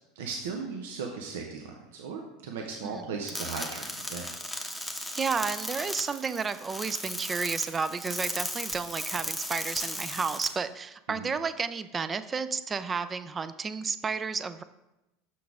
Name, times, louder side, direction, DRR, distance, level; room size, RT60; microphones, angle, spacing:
voice 1, 0.2-4.3 11.1-11.3, right 5 dB, 75° right, 2 dB, 0.8 m, -37 dB
sound 1, 3.3-10.5, left 1 dB, ahead, 1.0 m, -36 dB
voice 2, 5.2-14.6, right 5 dB, 25° right, 13 dB, 0.4 m, -32 dB
6.3 x 5.8 x 3.6 m, 0.95 s
hypercardioid pair, 90°, 0 cm